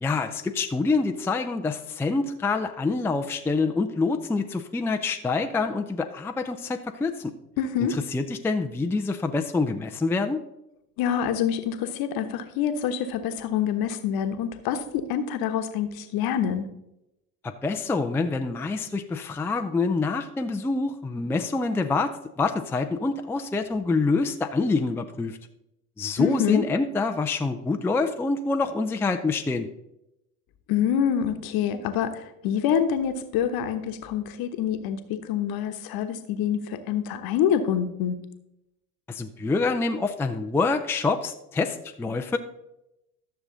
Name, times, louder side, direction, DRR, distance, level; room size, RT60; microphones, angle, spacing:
voice 1, 0.0-7.3 7.9-10.4 17.4-22.1 22.4-25.4 26.0-29.7 39.1-42.4, left 3 dB, 5° left, 6 dB, 0.5 m, -26 dB
voice 2, 7.6-7.9 11.0-16.6 26.2-26.6 30.7-38.2, left 8 dB, 50° left, 9 dB, 1.2 m, -26 dB
12.5 x 6.7 x 3.9 m, 0.87 s
hypercardioid pair, 70°, 46 cm